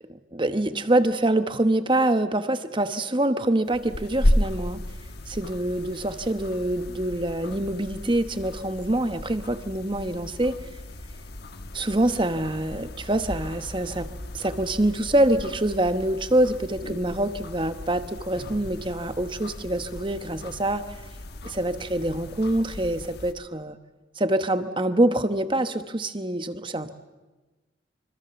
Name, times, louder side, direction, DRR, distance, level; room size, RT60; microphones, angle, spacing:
voice 1, 0.1-4.8 5.3-10.6 11.7-20.8 21.4-23.8 24.2-26.9, right 1 dB, 25° right, 10 dB, 1.1 m, -25 dB
sound 1, 3.7-23.3, left 1 dB, 55° left, 1.3 m, -34 dB
26.0 x 25.0 x 7.0 m, 1.2 s
head